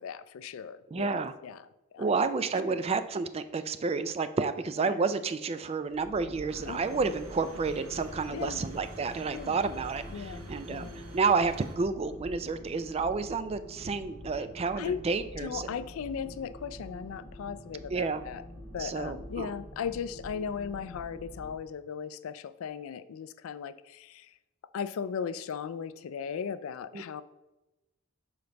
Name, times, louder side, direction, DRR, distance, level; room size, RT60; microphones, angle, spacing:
voice 1, 0.0-2.2 2.7-2.8 4.8-5.1 6.6-7.1 8.3-8.6 9.3-9.6 10.1-11.0 14.7-15.1 15.4-18.4 18.7-24.3 24.7-27.2, left 7 dB, 70° left, 15 dB, 0.3 m, -37 dB
voice 2, 0.9-1.3 2.0-15.7 17.9-18.2 18.8-19.5 26.9-27.0, right 4 dB, 30° right, 12 dB, 0.3 m, -30 dB
sound 1, 5.9-21.6, equal, 10° left, 2.1 m, -46 dB
sound 2, 6.5-11.8, right 2 dB, 75° right, 1.1 m, -49 dB
5.2 x 3.9 x 5.8 m, 1.0 s
head